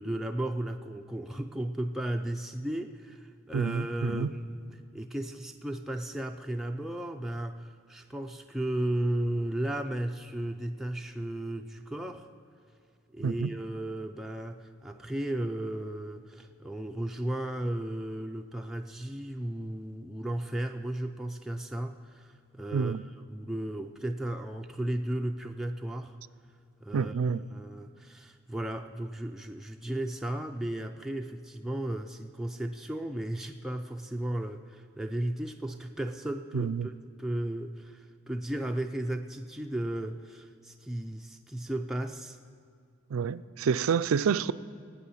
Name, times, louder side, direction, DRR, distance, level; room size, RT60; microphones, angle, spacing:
voice 1, 0.0-12.3 13.1-26.1 26.8-27.1 27.5-36.9 37.2-42.4, right 1 dB, ahead, 0.3 m, -35 dB
voice 2, 3.5-4.3 13.2-13.5 22.7-23.0 26.9-27.4 36.5-36.9 43.1-44.5, right 6 dB, 80° right, 0.4 m, -28 dB
18.0 x 8.6 x 5.6 m
head